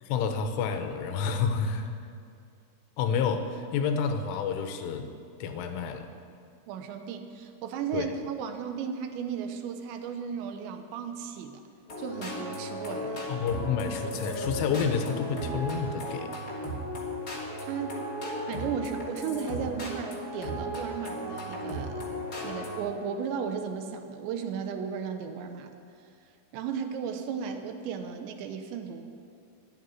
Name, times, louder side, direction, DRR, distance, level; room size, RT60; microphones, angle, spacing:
voice 1, 0.0-1.9 3.0-5.1 5.4-6.1 7.9-8.1 13.3-16.4, left 6 dB, 85° left, 7 dB, 3.5 m, -29 dB
voice 2, 6.7-11.6 12.0-13.3 17.7-18.0 18.5-22.0 22.4-25.7 26.5-29.0, right 6 dB, 80° right, 6 dB, 2.9 m, -35 dB
sound 1, 11.9-22.8, equal, 30° left, 2.0 m, -35 dB
14.0 x 10.0 x 9.9 m, 2.4 s
omnidirectional pair, 5.7 m